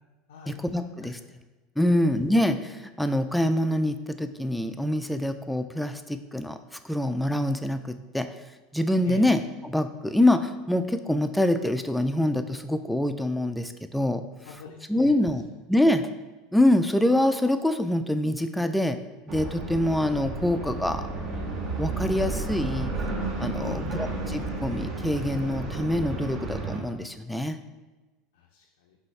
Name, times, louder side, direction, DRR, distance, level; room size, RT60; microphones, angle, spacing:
voice 1, 0.5-1.2 1.8-6.6 6.8-8.3 8.7-14.2 14.9-15.4 15.7-16.1 16.5-19.0 19.3-21.1 21.8-22.9 23.4-27.6, left 1 dB, 5° left, 9 dB, 0.3 m, -25 dB
voice 2, 14.4-15.3 23.6-24.0 28.3-29.0, left 7 dB, 85° left, -1 dB, 0.4 m, -42 dB
sound 1, 19.3-26.8, right 3 dB, 50° right, 0.9 m, -32 dB
5.2 x 2.7 x 3.2 m, 1.2 s
hypercardioid pair, 95°, 0 cm